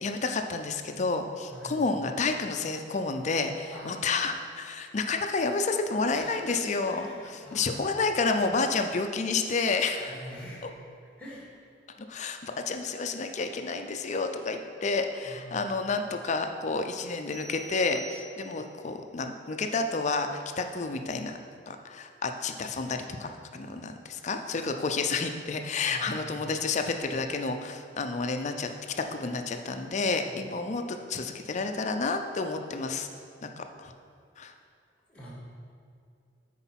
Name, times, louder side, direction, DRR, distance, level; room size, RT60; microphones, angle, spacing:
voice 1, 0.0-10.2 12.1-21.4 21.7-28.7 29.0-33.1 33.4-33.9 34.4-34.5, left 4 dB, 40° left, 6 dB, 0.5 m, -30 dB
voice 2, 3.7-4.1 6.1-6.6 6.9-8.0 10.0-10.6 11.2-11.5 12.2-12.3 15.2-15.7 25.9-26.4 30.2-30.4 35.1-35.3, equal, 5° left, -5 dB, 2.1 m, -45 dB
sound 1, 17.3-18.8, right 1 dB, 20° right, 1.9 m, -47 dB
8.3 x 4.5 x 5.8 m, 2.4 s
head